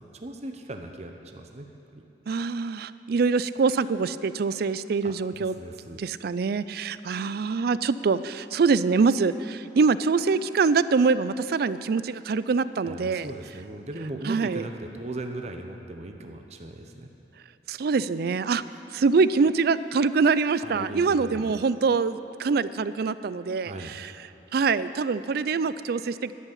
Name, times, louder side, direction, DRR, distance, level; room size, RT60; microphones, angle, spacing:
voice 1, 0.0-2.0 5.0-6.0 12.8-17.1 20.6-21.5 23.6-24.0, right 1 dB, 40° right, 5 dB, 0.8 m, -38 dB
voice 2, 2.3-5.5 6.0-13.3 14.3-14.6 17.7-18.6 18.9-24.1 24.5-26.3, right 4 dB, 60° right, 15 dB, 0.4 m, -24 dB
11.0 x 8.1 x 9.8 m, 2.8 s
head